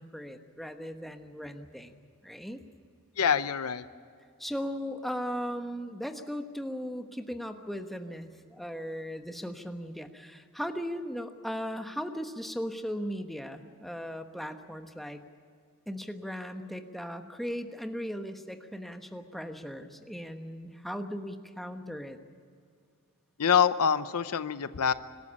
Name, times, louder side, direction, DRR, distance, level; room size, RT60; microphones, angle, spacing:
voice 1, 0.0-2.6 4.4-15.2 15.9-22.2, equal, ahead, 6 dB, 1.1 m, -37 dB
voice 2, 3.2-3.9 23.4-24.9, left 7 dB, 85° left, 13 dB, 0.7 m, -25 dB
25.0 x 13.0 x 9.9 m, 2.3 s
head